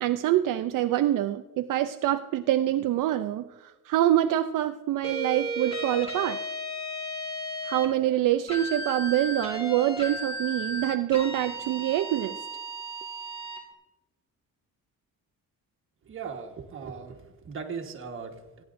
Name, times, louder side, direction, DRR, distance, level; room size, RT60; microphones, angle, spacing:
voice 1, 0.0-6.4 7.6-12.4, right 13 dB, 70° right, 8 dB, 0.5 m, -25 dB
sound 1, 5.0-7.9 8.5-13.6, right 1 dB, 15° left, 2.1 m, -35 dB
voice 2, 16.0-18.6, right 5 dB, 40° right, 3 dB, 1.4 m, -39 dB
27.0 x 10.5 x 2.6 m, 1.1 s
cardioid pair, 160°, 33 cm